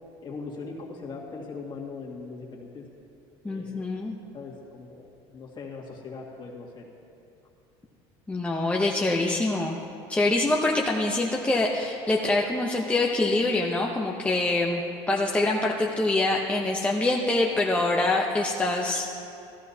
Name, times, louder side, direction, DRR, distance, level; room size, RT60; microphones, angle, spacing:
voice 1, 0.2-2.8 3.5-3.9 4.3-6.9, left 4 dB, 35° left, -2 dB, 2.0 m, -40 dB
voice 2, 3.4-4.2 8.3-9.8 10.1-14.8 15.1-19.2, left 2 dB, 10° left, -2 dB, 0.8 m, -25 dB
14.0 x 13.0 x 2.8 m, 2.6 s
supercardioid pair, 110°, 13 cm